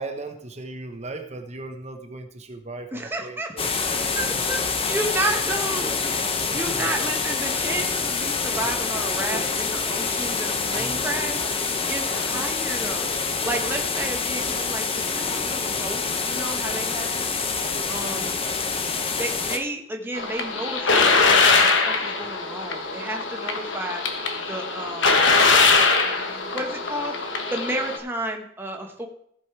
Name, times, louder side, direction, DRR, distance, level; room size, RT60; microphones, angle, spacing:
voice 1, 0.0-3.7 4.3-4.4 6.5-6.9 9.3-9.5 10.8-11.1 25.7-26.6, right 2 dB, 35° right, 5 dB, 1.0 m, -38 dB
voice 2, 2.9-17.3 17.9-18.3 19.2-24.2 24.5-25.4 26.1-29.1, right 1 dB, 10° right, 2 dB, 1.0 m, -32 dB
sound 1, 3.6-19.6, left 4 dB, 30° left, 0.9 m, -26 dB
sound 2, 20.1-28.0, left 4 dB, 75° left, 1.3 m, -21 dB
15.5 x 5.3 x 4.8 m, 0.69 s
head